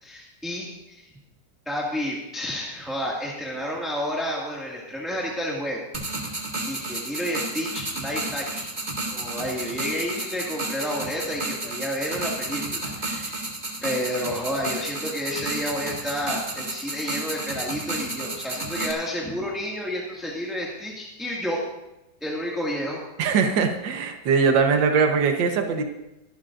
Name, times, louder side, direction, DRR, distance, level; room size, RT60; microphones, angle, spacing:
voice 1, 0.0-1.1 1.7-5.8 6.6-8.6 9.1-13.5 13.8-21.6 22.2-23.0, equal, ahead, -5 dB, 1.8 m, -30 dB
sound 1, 5.9-18.9, right 2 dB, 25° right, 1.5 m, -32 dB
voice 2, 23.2-25.8, right 5 dB, 65° right, 5 dB, 1.7 m, -21 dB
23.5 x 11.5 x 2.6 m, 0.94 s
omnidirectional pair, 2.2 m